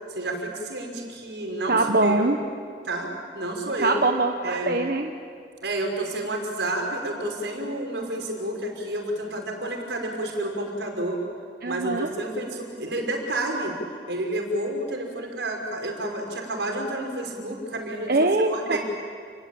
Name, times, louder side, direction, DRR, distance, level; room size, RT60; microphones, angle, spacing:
voice 1, 0.1-2.4 2.8-3.1 3.3-4.0 4.4-4.7 5.6-11.2 11.6-13.7 14.1-18.1 18.5-18.8, right 1 dB, 85° right, 2 dB, 5.5 m, -30 dB
voice 2, 1.7-2.4 3.8-5.1 11.6-12.1 18.1-18.8, right 2 dB, 55° right, 4 dB, 1.3 m, -23 dB
29.5 x 21.0 x 8.8 m, 2.3 s
head